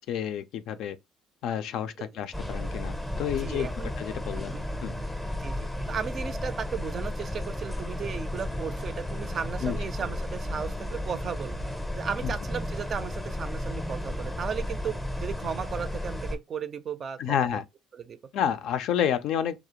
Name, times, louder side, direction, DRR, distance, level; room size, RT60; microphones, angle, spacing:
voice 1, 0.1-1.0 1.4-3.7 4.0-4.9 9.6-9.8 12.2-12.3 17.2-17.6 18.3-19.6, left 9 dB, 70° left, 0.3 m, -29 dB
sound 1, 2.3-16.4, left 1 dB, 5° left, 0.5 m, -33 dB
voice 2, 3.2-3.9 4.4-4.7 5.4-11.6 11.9-17.4 17.9-18.2, right 7 dB, 40° right, 0.4 m, -35 dB
2.4 x 2.0 x 2.8 m
cardioid pair, 100°, 0 cm